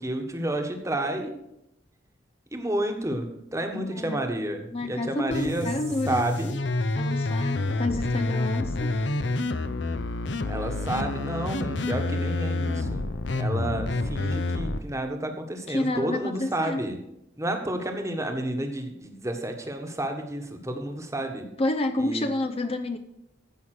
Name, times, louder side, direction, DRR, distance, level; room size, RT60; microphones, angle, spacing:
voice 1, 0.0-1.3 2.5-5.7 6.1-6.5 10.4-13.0 13.3-17.0 17.4-21.5 22.0-22.3, right 1 dB, 15° right, 5 dB, 1.3 m, -30 dB
voice 2, 3.7-4.2 4.7-6.2 6.9-9.0 15.7-16.8 21.6-23.0, left 2 dB, 30° left, 7 dB, 0.6 m, -29 dB
sound 1, 5.3-14.8, left 2 dB, 65° left, 0.7 m, -28 dB
15.0 x 5.6 x 6.5 m, 0.83 s
head